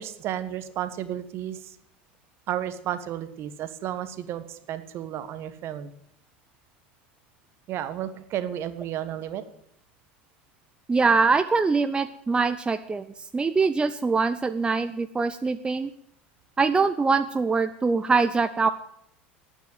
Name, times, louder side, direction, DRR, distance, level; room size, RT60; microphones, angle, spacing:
voice 1, 0.0-1.8 2.5-5.9 7.7-9.4, right 11 dB, 45° right, 12 dB, 1.4 m, -32 dB
voice 2, 10.9-13.1 13.3-15.9 16.6-18.7, right 4 dB, 15° right, 10 dB, 0.7 m, -23 dB
10.5 x 9.2 x 9.2 m, 0.72 s
hypercardioid pair, 75°, 6 cm